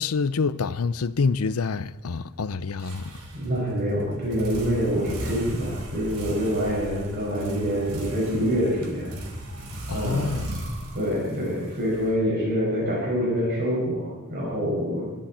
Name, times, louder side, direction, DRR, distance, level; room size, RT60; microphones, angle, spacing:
voice 1, 0.0-3.1 9.9-10.5, left 4 dB, 80° left, 0.7 m, -27 dB
sound 1, 2.8-12.6, right 1 dB, 75° right, 4.0 m, -36 dB
voice 2, 3.3-9.1 9.9-10.3 10.9-15.1, equal, 50° right, 6.1 m, -26 dB
22.5 x 14.0 x 4.4 m
head